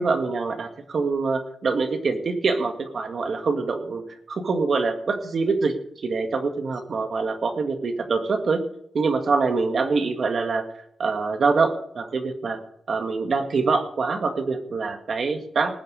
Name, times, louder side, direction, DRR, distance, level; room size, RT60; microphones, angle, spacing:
voice 1, 0.0-4.0 4.3-5.7 6.0-8.6 8.9-12.6 12.9-15.7, right 4 dB, 50° right, 6 dB, 1.9 m, -24 dB
19.0 x 8.1 x 5.3 m, 0.70 s
wide cardioid pair, 145°, 0 cm